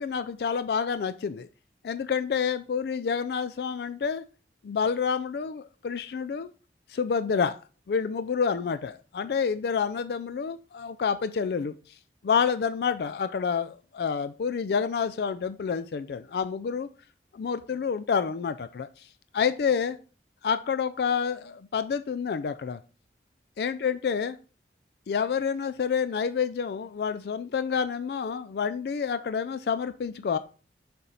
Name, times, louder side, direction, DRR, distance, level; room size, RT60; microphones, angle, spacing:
voice 1, 0.0-1.5 1.8-4.2 4.6-6.5 6.9-7.6 7.9-12.0 12.2-16.9 17.3-19.1 19.3-20.0 20.4-22.8 23.6-24.4 25.1-30.4, left 6 dB, 65° left, 11 dB, 0.3 m, -28 dB
6.9 x 4.3 x 3.9 m, 0.37 s
head